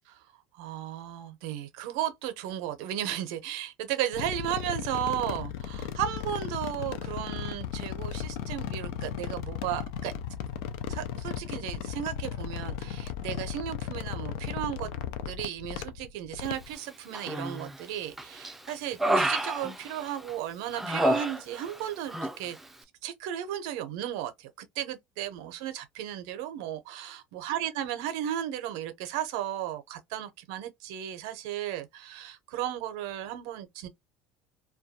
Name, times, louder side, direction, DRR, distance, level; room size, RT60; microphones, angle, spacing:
voice 1, 0.6-10.1 10.9-14.9 15.3-22.6 23.0-33.9, right 11 dB, 75° right, 0.6 m, -35 dB
sound 1, 4.1-16.7, left 9 dB, 75° left, 0.4 m, -36 dB
Human voice, 17.1-17.8 18.2-20.3 20.7-21.8 22.1-22.4, right 1 dB, 10° right, 0.4 m, -29 dB
2.3 x 2.2 x 2.6 m
supercardioid pair, 105°, 3 cm